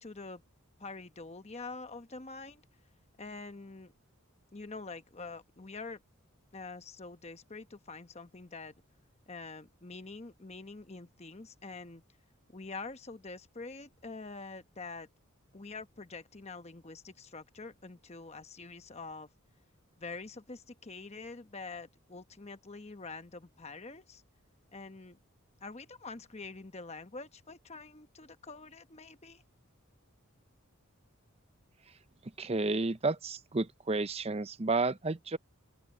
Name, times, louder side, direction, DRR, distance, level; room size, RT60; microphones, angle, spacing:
voice 1, 0.0-0.4 0.8-2.6 3.2-3.9 4.5-6.0 6.5-8.7 9.3-12.0 12.5-15.1 15.5-19.3 20.0-24.2 24.7-25.2 25.6-29.4, left 3 dB, 30° left, 1.0 m, -45 dB
voice 2, 32.4-35.4, right 3 dB, 25° right, 0.6 m, -31 dB
open air
head